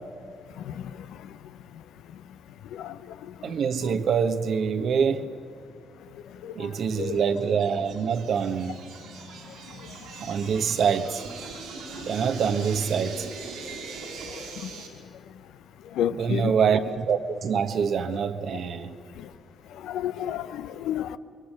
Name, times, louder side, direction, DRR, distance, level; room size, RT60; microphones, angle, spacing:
voice 1, 3.4-5.3 6.6-8.8 10.2-11.2 12.1-13.3 16.1-19.0, right 6 dB, 65° right, 1.4 m, -25 dB
sound 1, 6.9-14.9, right 4 dB, 85° right, 5.4 m, -41 dB
voice 2, 16.0-16.5 19.9-21.2, left 10 dB, 80° left, 0.7 m, -29 dB
28.5 x 22.5 x 6.6 m
supercardioid pair, 60°, 0 cm